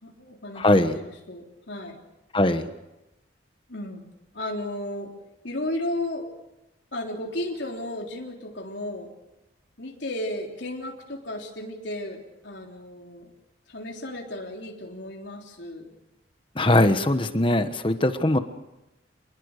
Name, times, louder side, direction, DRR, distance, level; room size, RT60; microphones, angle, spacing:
voice 1, 0.0-0.6 0.9-2.0 3.7-5.1 5.4-6.3 6.9-9.1 9.8-13.3 13.7-15.8, left 1 dB, 70° left, 0 dB, 3.5 m, -34 dB
voice 2, 0.5-1.0 2.3-2.7 16.5-18.4, left 1 dB, 25° left, 9 dB, 1.3 m, -21 dB
27.0 x 20.5 x 6.6 m, 0.96 s
head